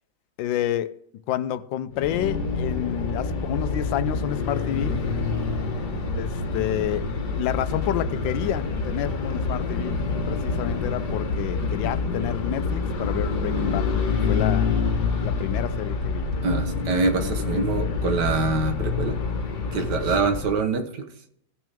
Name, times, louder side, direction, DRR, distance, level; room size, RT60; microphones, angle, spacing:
voice 1, 0.4-1.0 1.3-5.0 6.1-7.1 7.4-10.0 10.3-13.9 14.3-14.7 15.2-16.3 17.1-17.6, left 12 dB, 85° left, 1.3 m, -29 dB
sound 1, 1.9-20.7, left 4 dB, 60° left, 1.8 m, -27 dB
voice 2, 16.4-19.2 19.7-21.0, right 4 dB, 65° right, 1.7 m, -25 dB
16.5 x 6.1 x 3.5 m
omnidirectional pair, 2.0 m